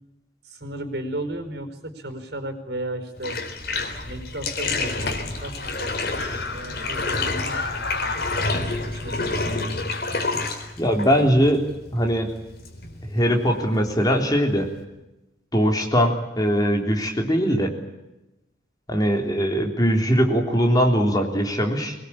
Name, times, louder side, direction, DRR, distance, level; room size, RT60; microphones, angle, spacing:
voice 1, 0.5-3.4 4.0-9.8, right 1 dB, 70° right, 7 dB, 4.9 m, -35 dB
Bathtub (filling or washing), 3.2-14.8, left 3 dB, 55° left, 4.1 m, -30 dB
sound 1, 3.6-9.8, left 3 dB, 85° left, 3.5 m, -33 dB
voice 2, 10.8-11.6 11.9-12.3 13.1-14.7 15.5-17.7 18.9-22.0, equal, 20° left, 2 dB, 3.5 m, -21 dB
23.5 x 20.5 x 8.7 m, 0.97 s
head